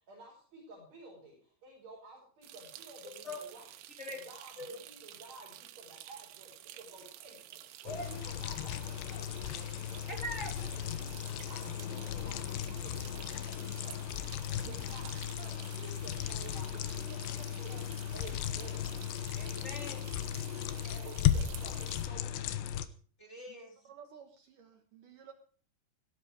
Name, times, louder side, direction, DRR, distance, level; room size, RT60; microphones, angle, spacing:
voice 1, 0.0-10.2 10.6-15.1 15.4-17.9 18.1-18.9 20.9-22.6, right 2 dB, 40° right, -2 dB, 6.3 m, -52 dB
sound 1, 2.4-22.1, right 13 dB, 85° right, 3.3 m, -51 dB
sound 2, 7.9-22.9, left 10 dB, 85° left, 3.2 m, -36 dB
voice 2, 15.4-15.7 17.0-17.3 17.7-18.2 20.4-21.4 23.5-23.6 23.8-25.3, right 7 dB, 65° right, 7 dB, 2.3 m, -55 dB
voice 3, 19.3-20.1 23.2-23.7, left 1 dB, 15° left, 2 dB, 3.1 m, -42 dB
17.0 x 14.5 x 5.1 m, 0.43 s
omnidirectional pair, 5.0 m